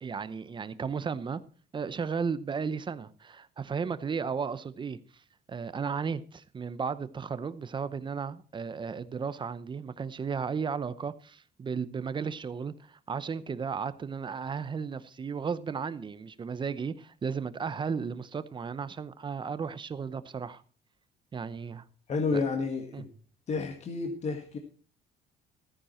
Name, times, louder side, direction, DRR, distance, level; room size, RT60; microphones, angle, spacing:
voice 1, 0.0-1.4 1.7-5.0 5.5-20.6 21.3-21.8 22.3-22.4 22.9-23.0, right 6 dB, 30° right, 0.8 m, -34 dB
voice 2, 22.1-23.1 23.5-24.6, left 4 dB, 40° left, 1.8 m, -30 dB
14.0 x 9.9 x 4.4 m
cardioid pair, 110°, 17 cm